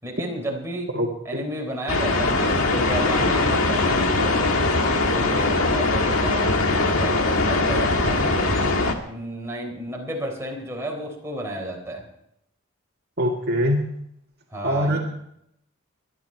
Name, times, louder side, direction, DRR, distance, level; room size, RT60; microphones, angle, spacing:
voice 1, 0.0-0.9 1.3-6.7 7.0-8.7 9.0-12.0 14.5-15.0, right 1 dB, 15° right, -1 dB, 3.9 m, -32 dB
voice 2, 0.9-1.4 13.2-13.8 14.6-15.0, equal, 50° right, 0 dB, 1.9 m, -23 dB
sound 1, 1.9-8.9, left 2 dB, 80° left, 1.8 m, -21 dB
21.5 x 11.5 x 4.6 m, 0.75 s
head